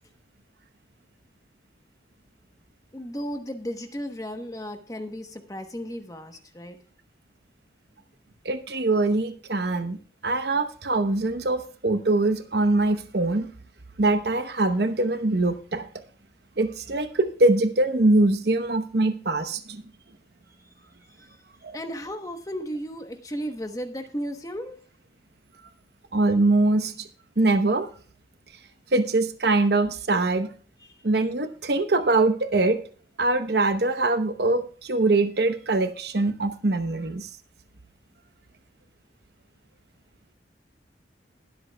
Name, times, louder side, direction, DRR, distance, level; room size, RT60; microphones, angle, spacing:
voice 1, 2.9-6.8 20.6-20.7 21.1-21.4 21.7-24.8 30.8-31.0, equal, 20° left, 6 dB, 1.0 m, -35 dB
voice 2, 8.4-10.0 10.2-13.5 14.0-15.9 16.6-19.8 21.6-21.8 26.1-27.1 27.4-27.9 28.9-30.5 31.0-32.8 33.2-37.3, right 2 dB, 65° right, 9 dB, 0.9 m, -23 dB
21.0 x 7.9 x 2.2 m, 0.40 s
head